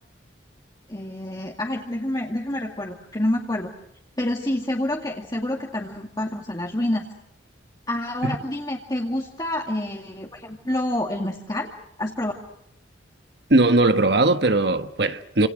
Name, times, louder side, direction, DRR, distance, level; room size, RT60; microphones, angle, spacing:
voice 1, 0.9-3.7 4.2-7.1 7.9-11.7 12.0-12.3, left 1 dB, 20° left, 2.3 m, -28 dB
voice 2, 13.5-15.5, right 2 dB, 60° right, 1.4 m, -19 dB
29.0 x 27.0 x 6.3 m
head